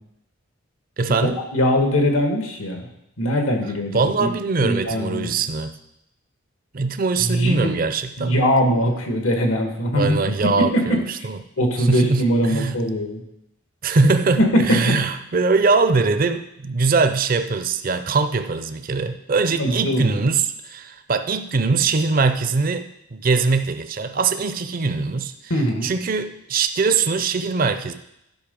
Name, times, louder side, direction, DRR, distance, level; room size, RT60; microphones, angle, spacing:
voice 1, 1.0-1.4 3.9-5.7 6.7-8.4 9.9-11.4 11.8-12.2 12.5-12.7 13.8-25.3 25.8-27.9, right 4 dB, 45° right, 10 dB, 0.5 m, -22 dB
voice 2, 1.5-2.9 3.2-4.3 4.6-5.3 7.2-7.8 8.2-10.1 10.6-11.3 11.6-13.2 14.4-14.9 19.5-20.2 25.5-25.9, equal, 85° left, 4 dB, 1.6 m, -21 dB
11.5 x 5.4 x 5.2 m, 0.81 s
head